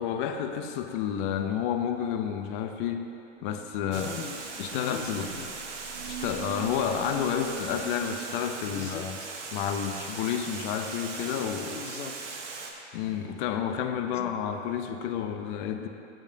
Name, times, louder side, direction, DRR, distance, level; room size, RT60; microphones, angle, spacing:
voice 1, 0.0-3.1 3.4-4.1 4.6-5.3 6.1-9.1 9.5-11.8 12.9-15.9, left 8 dB, 45° left, 6 dB, 0.7 m, -30 dB
sound 1, 3.4-8.4, right 10 dB, 40° right, 0.4 m, -44 dB
voice 2, 3.9-4.4 4.7-5.6 8.6-9.3 11.7-12.2 14.1-14.4, left 7 dB, 90° left, 7 dB, 0.7 m, -40 dB
Water, 3.9-12.7, right 4 dB, 70° right, 1.4 m, -39 dB
13.0 x 7.3 x 2.8 m, 2.6 s
hypercardioid pair, 115°, 37 cm